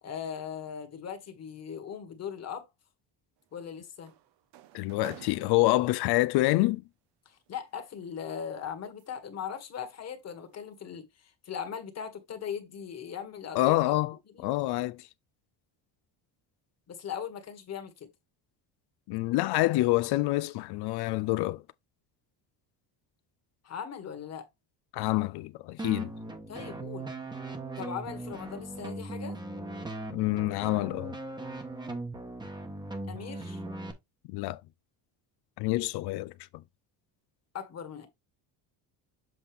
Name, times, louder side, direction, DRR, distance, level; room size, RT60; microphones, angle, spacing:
voice 1, 0.0-2.7 3.5-4.1 7.3-14.0 14.3-14.5 16.9-18.1 23.6-24.5 26.5-27.1 27.8-29.4 33.1-33.6 37.5-38.1, left 7 dB, 40° left, 1.7 m, -39 dB
sound 1, 3.4-6.3 7.5-9.4 9.8-10.1 10.5-10.8, right 13 dB, 75° right, 0.9 m, -53 dB
voice 2, 4.7-6.8 13.5-14.1 14.4-15.1 19.1-21.6 24.9-26.1 30.1-31.1 34.3-34.6 35.6-36.3, left 18 dB, 65° left, 0.5 m, -27 dB
sound 2, 25.8-33.9, right 2 dB, 10° right, 1.1 m, -39 dB
7.8 x 4.1 x 3.5 m
cardioid pair, 145°, 42 cm